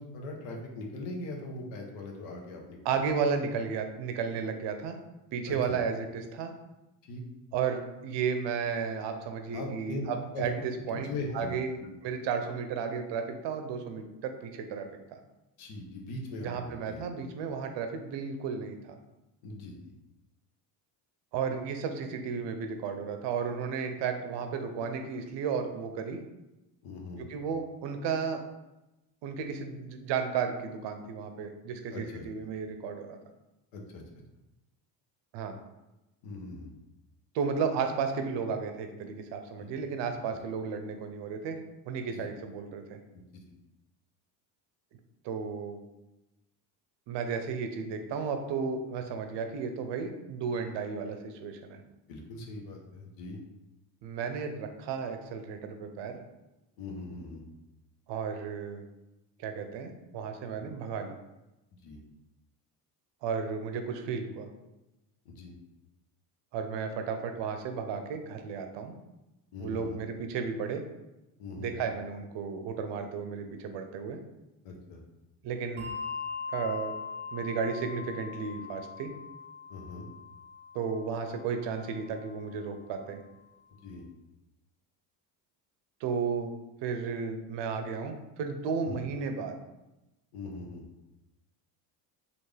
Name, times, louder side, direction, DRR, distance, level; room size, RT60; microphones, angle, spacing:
voice 1, 0.0-2.8 5.4-5.8 7.0-7.2 9.5-10.0 10.3-11.9 15.6-17.0 19.4-19.9 26.8-27.3 31.9-32.2 33.7-34.0 36.2-36.7 39.6-39.7 42.1-42.2 43.1-43.4 52.1-53.4 56.8-57.4 60.6-60.7 61.8-62.0 65.2-65.5 69.5-70.0 71.4-71.9 74.6-75.0 79.7-80.1 83.8-84.0 88.8-89.0 90.3-90.8, left 2 dB, 75° left, 2 dB, 0.9 m, -40 dB
voice 2, 2.8-5.0 5.3-6.5 7.5-14.9 16.4-19.0 21.3-26.2 27.2-28.4 29.2-33.2 35.3-35.6 37.3-41.6 41.9-43.0 45.2-45.8 47.1-51.8 54.0-56.2 58.1-58.8 59.4-61.1 63.2-64.5 66.5-69.0 69.6-70.8 71.6-74.2 75.4-75.9 76.5-76.9 77.3-79.1 80.7-83.2 86.0-86.5 86.8-89.6, right 6 dB, 60° right, 6 dB, 0.6 m, -33 dB
Bell, 75.8-82.6, left 5 dB, 20° right, 0.7 m, -41 dB
3.4 x 2.4 x 3.2 m, 0.97 s
supercardioid pair, 80°, 50 cm